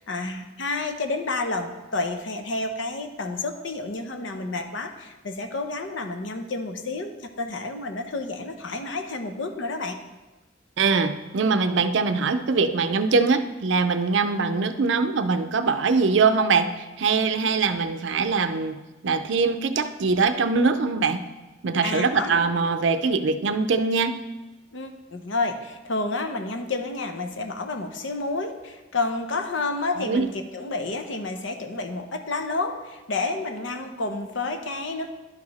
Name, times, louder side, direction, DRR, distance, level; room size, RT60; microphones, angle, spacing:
voice 1, 0.0-10.0 21.8-22.4 24.7-35.1, left 3 dB, 75° left, 7 dB, 0.7 m, -30 dB
voice 2, 10.8-21.2 21.6-24.2 30.0-30.3, right 4 dB, 65° right, 10 dB, 0.5 m, -22 dB
11.0 x 4.9 x 4.1 m, 1.1 s
head